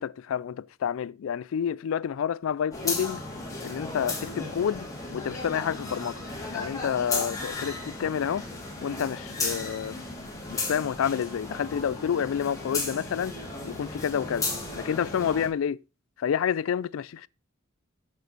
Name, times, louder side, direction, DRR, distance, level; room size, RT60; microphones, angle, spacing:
voice 1, 0.0-3.2 3.6-6.2 6.5-8.5 8.8-10.0 10.5-13.3 13.6-14.5 14.8-15.8 16.2-17.3, left 8 dB, 75° left, 0.3 m, -29 dB
sound 1, 2.7-15.5, left 3 dB, 15° left, 2.6 m, -35 dB
7.9 x 7.5 x 4.0 m
head